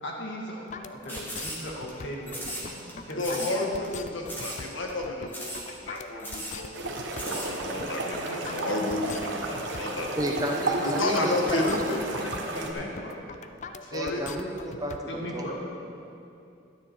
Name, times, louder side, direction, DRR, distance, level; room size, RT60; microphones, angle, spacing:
voice 1, 0.0-4.3 4.6-4.7 10.6-13.2 15.1-15.6, equal, 65° left, -1 dB, 1.9 m, -38 dB
sound 1, 0.7-15.0, left 5 dB, 35° left, 0.3 m, -42 dB
sound 2, 1.1-1.9 2.3-2.9 3.2-3.6 3.8-3.9 4.3-4.6 4.9-5.0 5.3-5.7 5.9-6.0 6.2-6.6 7.0-7.5, equal, 10° left, 1.6 m, -37 dB
voice 2, 3.2-6.7 7.2-10.1 10.8-12.2 13.8-14.2, left 2 dB, 85° left, 1 dB, 1.4 m, -31 dB
sound 3, 6.7-12.7, right 2 dB, 65° right, 1.1 m, -33 dB
voice 3, 10.2-11.8 13.9-15.0 15.3-15.6, right 1 dB, 20° right, 1 dB, 0.8 m, -31 dB
12.0 x 9.7 x 4.6 m, 2.6 s
head